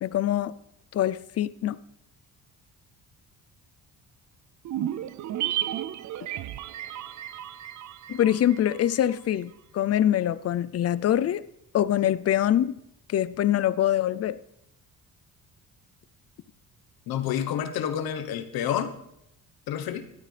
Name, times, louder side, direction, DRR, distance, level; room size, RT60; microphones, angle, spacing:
voice 1, 0.0-0.5 0.9-1.8 8.1-11.4 11.7-12.8 13.1-14.4, left 11 dB, 45° left, 17 dB, 0.5 m, -24 dB
sound 1, 4.6-9.1 9.4-9.5, right 12 dB, 55° right, 0.5 m, -33 dB
voice 2, 17.1-18.9 19.7-20.0, left 9 dB, 90° left, 8 dB, 1.1 m, -29 dB
13.0 x 12.0 x 3.3 m, 0.79 s
cardioid pair, 130°, 35 cm